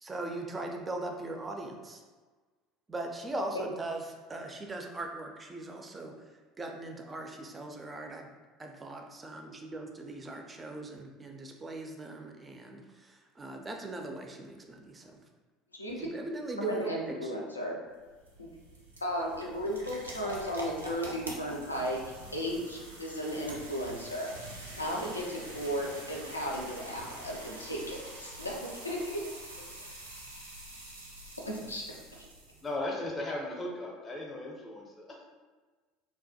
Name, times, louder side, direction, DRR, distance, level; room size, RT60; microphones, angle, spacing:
voice 1, 0.0-2.0 2.9-4.0 4.3-6.1 6.6-8.3 8.6-15.2 16.0-17.3, right 2 dB, 20° right, 2 dB, 0.4 m, -40 dB
voice 2, 15.7-16.1 16.6-17.8 18.4-18.5 19.0-22.0 22.3-24.3 24.7-29.3 31.4-31.8 32.2-32.3, equal, 90° left, -2 dB, 0.3 m, -35 dB
sound 1, 17.9-32.7, right 1 dB, 90° right, 0.4 m, -45 dB
voice 3, 32.6-35.3, left 1 dB, 25° left, -1 dB, 0.6 m, -37 dB
2.2 x 2.1 x 2.6 m, 1.3 s
figure-of-eight pair, 70°, 0 cm